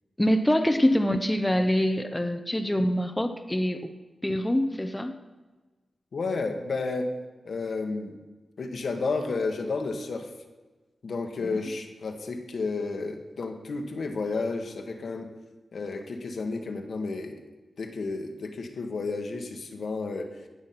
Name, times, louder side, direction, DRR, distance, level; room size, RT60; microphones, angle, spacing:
voice 1, 0.2-3.9 4.2-5.1, equal, 10° left, 6 dB, 1.0 m, -25 dB
voice 2, 6.1-7.1 7.4-8.2 8.6-10.3 11.0-15.3 15.7-17.4 17.8-20.3, left 3 dB, 70° left, 4 dB, 1.6 m, -31 dB
18.0 x 6.4 x 6.0 m, 1.2 s
cardioid pair, 70°, 0 cm